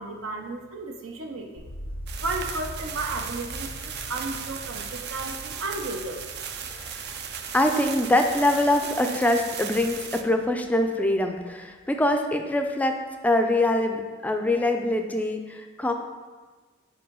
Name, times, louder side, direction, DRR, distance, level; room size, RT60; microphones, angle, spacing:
voice 1, 0.0-1.7 2.2-6.2, right 3 dB, 80° right, 2 dB, 0.8 m, -33 dB
sound 1, 1.6-11.5 11.8-12.6, left 1 dB, 75° left, 0.7 m, -43 dB
sound 2, 2.1-10.2, right 7 dB, 55° right, 0.5 m, -36 dB
voice 2, 6.7-7.1 7.5-15.9, left 1 dB, 10° left, 5 dB, 0.4 m, -24 dB
5.4 x 4.8 x 5.3 m, 1.4 s
head